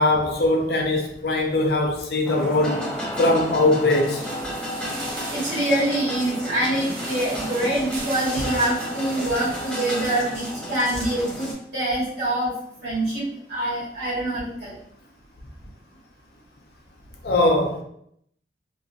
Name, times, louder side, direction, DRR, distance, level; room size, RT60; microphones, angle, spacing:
voice 1, 0.0-2.9 3.2-4.2 17.2-17.8, left 2 dB, 60° left, 0.5 m, -21 dB
sound 1, 2.2-11.5, equal, 5° left, 0.6 m, -32 dB
sound 2, 4.0-10.7 10.9-11.0, right 2 dB, 55° right, 0.7 m, -39 dB
voice 2, 5.3-12.5 12.8-14.7, right 1 dB, 85° right, 1.5 m, -25 dB
3.0 x 2.5 x 2.4 m
head